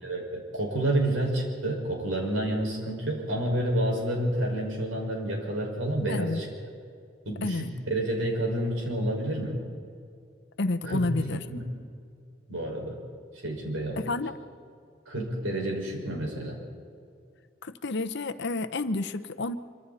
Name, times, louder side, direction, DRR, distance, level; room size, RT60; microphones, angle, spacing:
voice 1, 0.0-6.5 7.3-9.6 10.9-11.0 11.3-11.6 12.5-13.0 13.4-14.1 15.1-16.6, right 1 dB, 90° right, 0 dB, 5.6 m, -29 dB
voice 2, 6.1-6.4 7.4-7.7 10.6-11.4 14.0-14.3 17.6-19.6, left 2 dB, 60° left, 12 dB, 0.9 m, -30 dB
26.0 x 25.0 x 4.2 m, 2.3 s
head